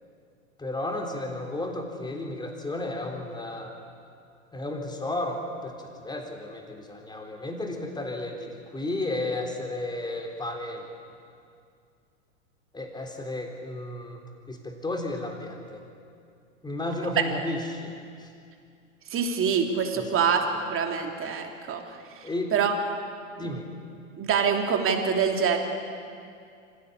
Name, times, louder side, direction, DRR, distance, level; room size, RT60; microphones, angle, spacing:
voice 1, 0.6-3.7 4.5-10.9 12.7-14.2 14.5-15.8 16.6-17.9 18.2-18.3 20.0-20.3 22.2-22.5 23.4-23.7, left 2 dB, 10° left, 2 dB, 3.7 m, -33 dB
voice 2, 19.1-20.4 20.7-21.8 22.5-22.7 23.4-23.5 24.2-25.6, right 6 dB, 30° right, 3 dB, 3.0 m, -25 dB
25.0 x 16.5 x 8.5 m, 2.4 s
hypercardioid pair, 95°, 41 cm